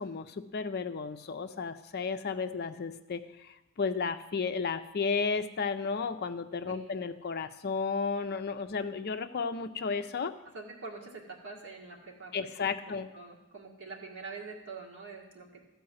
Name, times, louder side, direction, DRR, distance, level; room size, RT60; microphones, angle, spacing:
voice 1, 0.0-10.3 12.3-13.1, left 5 dB, 45° left, 9 dB, 0.5 m, -33 dB
voice 2, 10.5-15.7, right 4 dB, 60° right, -1 dB, 1.9 m, -45 dB
14.0 x 4.8 x 7.7 m, 0.99 s
head